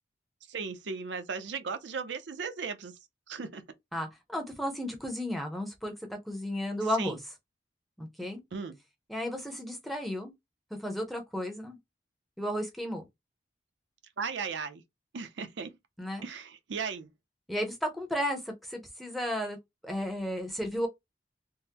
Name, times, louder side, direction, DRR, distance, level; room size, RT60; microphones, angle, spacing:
voice 1, 0.5-2.9 3.3-3.6 7.0-7.2 8.5-8.8 14.2-14.8 15.1-15.7 16.2-17.1, right 5 dB, 85° right, 0.5 m, -36 dB
voice 2, 3.9-7.2 8.0-8.4 9.1-10.3 10.8-11.8 12.4-13.1 16.0-16.2 17.5-19.6 19.8-20.9, equal, ahead, 0.6 m, -33 dB
3.5 x 2.0 x 2.8 m
head